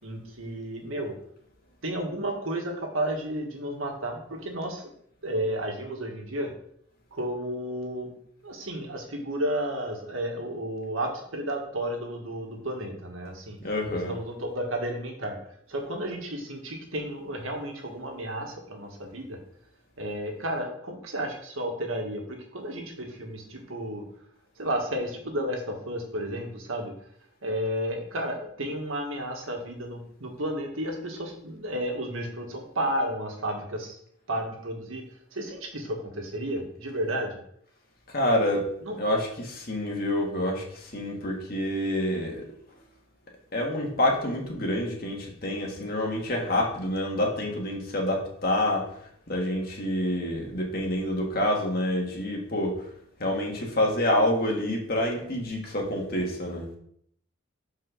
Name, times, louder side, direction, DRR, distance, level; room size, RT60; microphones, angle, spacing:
voice 1, 0.0-1.1 1.8-4.9 5.2-6.5 7.1-8.2 8.4-13.6 13.9-15.4 15.7-19.4 20.0-24.0 24.6-26.9 27.4-34.0 34.3-37.4 38.8-39.0, right 1 dB, 85° right, 1 dB, 1.8 m, -32 dB
voice 2, 13.6-14.1 38.1-38.7 39.0-42.4 43.5-48.9 49.3-52.8 53.2-56.7, left 1 dB, 50° left, 0 dB, 1.9 m, -27 dB
5.8 x 4.7 x 6.3 m, 0.67 s
head